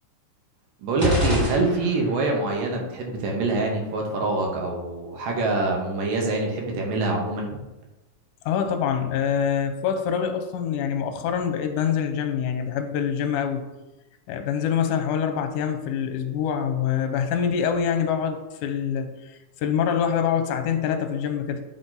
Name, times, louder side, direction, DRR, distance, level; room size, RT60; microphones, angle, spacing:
voice 1, 0.8-7.6, right 2 dB, 85° right, 0 dB, 2.8 m, -25 dB
sound 1, 1.0-2.3, left 2 dB, 60° right, 0.4 m, -26 dB
voice 2, 8.5-13.7 14.3-21.7, left 8 dB, 80° left, 6 dB, 2.1 m, -25 dB
9.3 x 3.8 x 4.0 m, 1.1 s
omnidirectional pair, 3.8 m